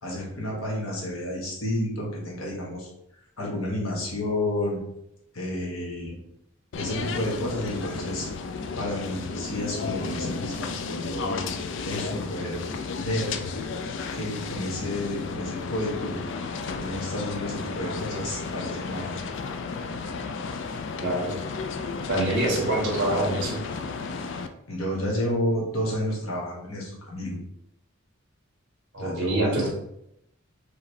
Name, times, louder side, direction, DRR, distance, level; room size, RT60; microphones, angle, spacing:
voice 1, 0.0-2.9 3.4-4.8 5.3-6.2 6.8-8.3 8.8-11.4 11.8-12.6 13.0-13.4 14.1-16.2 16.7-19.3 22.5-22.7 24.7-27.4 29.0-29.7, left 1 dB, 80° left, -3 dB, 1.3 m, -30 dB
sound 1, 6.7-24.5, left 4 dB, 60° left, 0.3 m, -33 dB
voice 2, 21.0-21.3 22.1-23.6 28.9-29.7, right 1 dB, 55° right, -2 dB, 1.5 m, -25 dB
4.8 x 3.1 x 3.1 m, 0.78 s
head